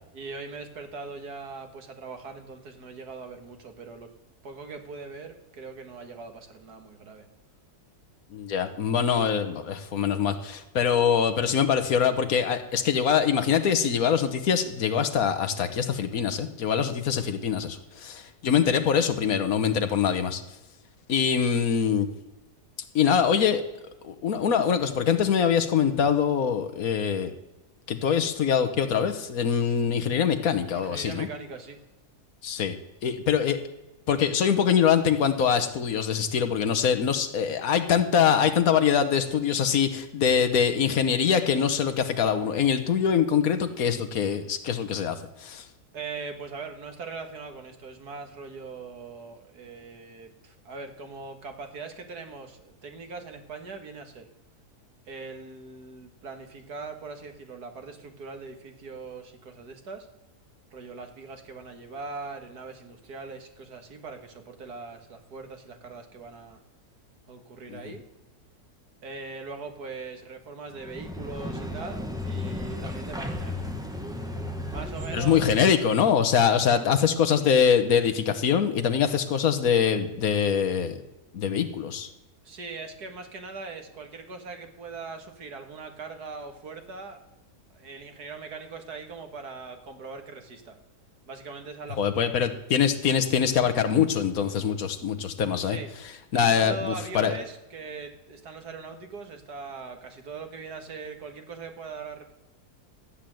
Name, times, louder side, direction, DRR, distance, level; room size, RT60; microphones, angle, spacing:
voice 1, 0.1-4.1 4.4-7.2 30.7-31.8 45.9-54.3 55.1-60.1 60.7-66.6 67.3-68.0 69.0-73.7 74.7-75.5 82.4-87.2 87.7-90.8 91.3-92.3 95.6-95.9 96.3-102.2, right 4 dB, 80° right, 6 dB, 2.2 m, -41 dB
voice 2, 8.3-20.4 21.1-22.1 22.9-23.6 24.0-27.3 27.9-31.3 32.4-32.8 33.0-33.6 34.1-45.6 67.7-67.9 75.1-81.0 81.3-82.1 92.0-95.8 96.3-97.3, left 7 dB, 65° left, 8 dB, 1.5 m, -24 dB
sound 1, 70.7-75.8, left 1 dB, 5° right, 1.3 m, -34 dB
13.5 x 8.6 x 7.7 m, 1.1 s
omnidirectional pair, 1.7 m